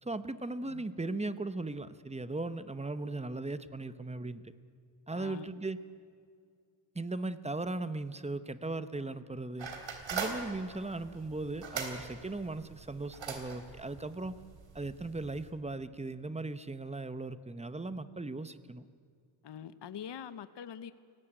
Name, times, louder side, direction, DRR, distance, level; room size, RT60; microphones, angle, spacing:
voice 1, 0.0-4.5 5.1-5.8 6.9-9.7 10.1-14.4 14.7-18.8, right 2 dB, 15° right, 13 dB, 0.9 m, -38 dB
voice 2, 5.1-5.5 19.4-20.9, left 8 dB, 60° left, 13 dB, 1.0 m, -44 dB
sound 1, 9.6-15.5, right 5 dB, 65° right, 3.6 m, -42 dB
30.0 x 17.5 x 8.9 m, 2.3 s
wide cardioid pair, 135°, 48 cm